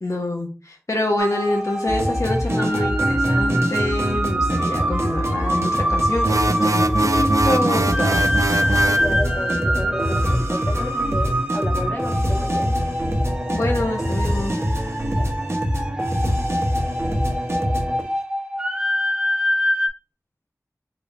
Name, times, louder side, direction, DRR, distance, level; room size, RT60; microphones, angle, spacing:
voice 1, 0.0-8.3 13.5-14.6, left 1 dB, 60° left, 1 dB, 0.7 m, -26 dB
sound 1, 1.2-19.9, equal, 15° right, 0.7 m, -25 dB
sound 2, 1.9-18.0, equal, 50° right, 1.0 m, -24 dB
sound 3, 6.2-9.1, right 3 dB, 65° right, 0.3 m, -23 dB
voice 2, 8.6-12.7 15.1-15.3, left 1 dB, 35° left, 2 dB, 1.1 m, -32 dB
3.9 x 3.3 x 2.6 m, 0.35 s
wide cardioid pair, 45°, 6 cm